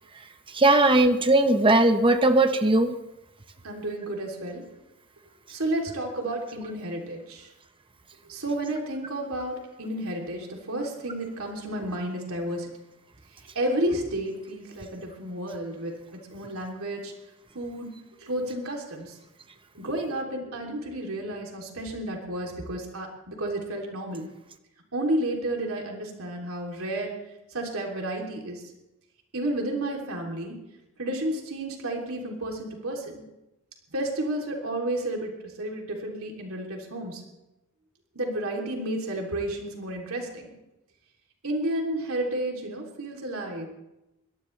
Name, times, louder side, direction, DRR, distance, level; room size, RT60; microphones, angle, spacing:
voice 1, 0.5-2.9, right 2 dB, 25° right, 8 dB, 1.0 m, -19 dB
voice 2, 3.6-4.6 5.5-7.5 8.3-12.7 13.5-15.9 16.3-17.1 17.5-17.9 18.2-19.1 19.7-24.2 24.9-27.1 27.5-28.6 29.3-30.5 31.0-33.2 33.9-37.2 38.1-40.5 41.4-43.7, right 1 dB, 75° right, 1 dB, 3.2 m, -31 dB
23.5 x 17.5 x 3.3 m, 0.95 s
head